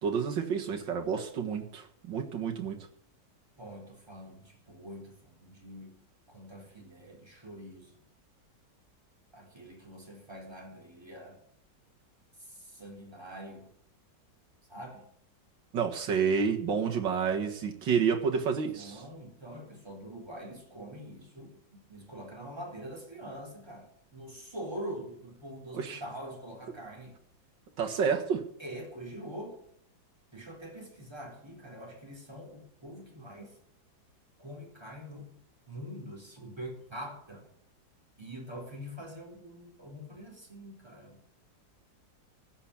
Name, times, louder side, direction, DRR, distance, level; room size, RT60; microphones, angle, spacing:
voice 1, 0.0-2.8 15.7-19.0 25.7-26.0 27.8-28.4, right 6 dB, 75° right, 2 dB, 2.3 m, -29 dB
voice 2, 3.6-6.0 6.3-8.1 9.3-11.4 12.4-13.8 14.7-15.1 18.7-27.2 28.6-29.6 30.3-33.6 34.4-35.3 35.7-37.5 38.2-41.3, equal, 15° right, -1 dB, 3.9 m, -44 dB
15.0 x 6.0 x 10.0 m, 0.67 s
omnidirectional pair, 2.0 m